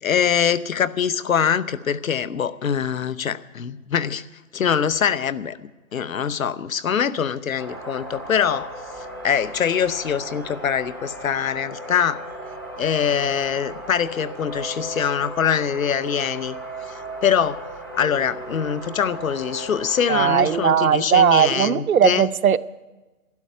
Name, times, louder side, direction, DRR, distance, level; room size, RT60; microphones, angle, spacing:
voice 1, 0.0-4.2 4.5-5.6 5.9-8.7 9.2-12.2 12.8-16.6 17.2-17.7 17.9-22.3, left 7 dB, 70° left, 16 dB, 0.8 m, -23 dB
sound 1, 7.6-20.8, right 1 dB, 15° left, 0.7 m, -36 dB
voice 2, 20.1-22.6, right 9 dB, 80° right, 13 dB, 0.7 m, -18 dB
12.0 x 11.0 x 9.2 m, 1.2 s
hypercardioid pair, 180°, 42 cm